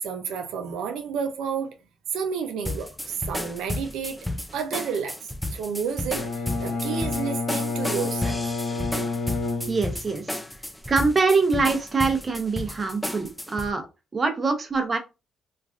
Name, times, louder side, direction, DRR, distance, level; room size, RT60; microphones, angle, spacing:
voice 1, 0.0-1.7 2.1-4.2 4.5-5.2 5.5-8.4, right 6 dB, 85° right, 0.4 m, -30 dB
sound 1, 2.6-13.7, left 1 dB, 5° left, 0.4 m, -33 dB
Bowed string instrument, 6.1-10.3, left 3 dB, 70° left, 0.6 m, -29 dB
voice 2, 9.7-10.3 10.9-13.9 14.1-15.0, right 4 dB, 35° right, 0.7 m, -24 dB
3.1 x 2.4 x 2.4 m
cardioid pair, 90°, 0 cm